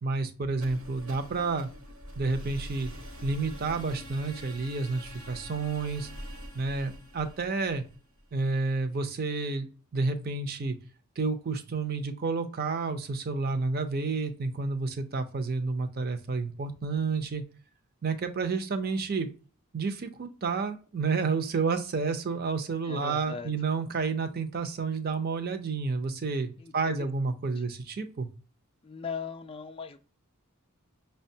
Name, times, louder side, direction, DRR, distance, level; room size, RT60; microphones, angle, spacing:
voice 1, 0.0-1.7 2.2-2.9 3.2-6.1 6.5-7.8 8.3-9.7 9.9-10.8 11.2-17.4 18.0-19.3 19.7-28.3, right 4 dB, 45° right, 8 dB, 0.5 m, -30 dB
sound 1, 0.5-8.4, equal, 70° right, 1.0 m, -44 dB
voice 2, 22.8-23.5 26.6-26.9 27.6-27.7 28.8-30.0, left 5 dB, 25° left, 6 dB, 0.3 m, -39 dB
5.7 x 2.2 x 2.7 m, 0.36 s
head